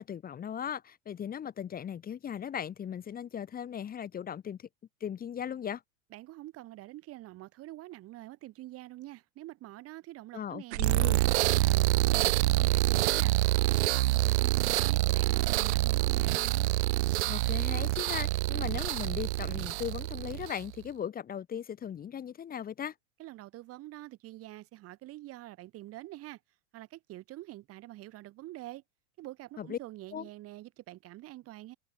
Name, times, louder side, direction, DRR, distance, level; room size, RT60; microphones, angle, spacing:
voice 1, 0.0-4.7 5.0-5.8 10.3-11.2 17.3-22.9 29.6-29.8 30.1-30.2, left 8 dB, 25° left, 2.7 m, -38 dB
voice 2, 6.1-13.3 13.7-16.7 23.2-26.4 26.7-28.8 29.2-31.8, right 16 dB, 45° right, 5.3 m, -46 dB
sound 1, 10.7-20.7, right 18 dB, 80° right, 0.6 m, -27 dB
hypercardioid pair, 115°, 33 cm